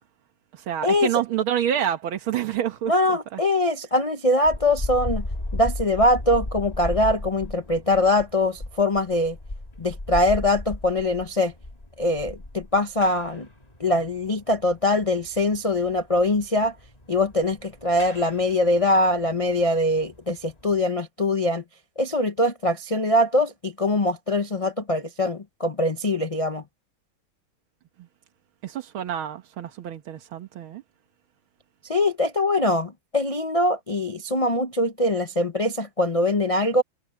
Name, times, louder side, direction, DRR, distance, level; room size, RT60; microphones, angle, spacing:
voice 1, 0.5-3.4 28.0-28.1 28.6-30.8, right 10 dB, 80° right, 2.1 m, -28 dB
voice 2, 2.9-5.2 5.5-9.4 9.8-11.5 12.0-13.5 13.8-16.7 17.1-21.6 22.0-26.6 31.9-36.8, left 1 dB, 60° left, 0.3 m, -23 dB
sound 1, 4.4-20.8, left 1 dB, 20° left, 2.5 m, -36 dB
omnidirectional pair, 2.2 m